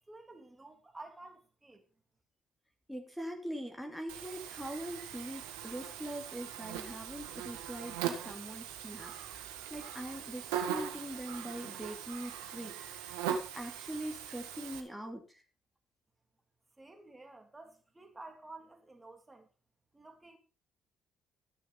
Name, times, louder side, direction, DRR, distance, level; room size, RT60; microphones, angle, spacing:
voice 1, 0.1-1.9 16.8-19.5 19.9-20.4, right 2 dB, 20° right, 2.9 m, -52 dB
voice 2, 2.9-15.4, equal, ahead, 2.6 m, -43 dB
Buzz, 4.1-14.8, right 9 dB, 85° right, 1.7 m, -40 dB
14.0 x 6.5 x 5.3 m
hypercardioid pair, 55°, 0 cm